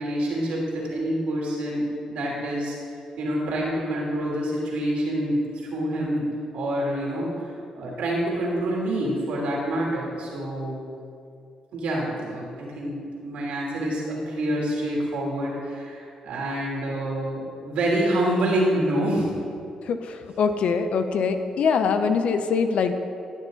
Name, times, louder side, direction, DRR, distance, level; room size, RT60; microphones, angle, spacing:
voice 1, 0.0-2.8 3.2-6.3 6.5-10.9 11.7-19.3, right 1 dB, 80° right, -4 dB, 2.9 m, -27 dB
voice 2, 19.9-22.9, left 5 dB, 70° left, 8 dB, 0.8 m, -23 dB
14.5 x 7.4 x 4.0 m, 2.4 s
cardioid pair, 65°, 2 cm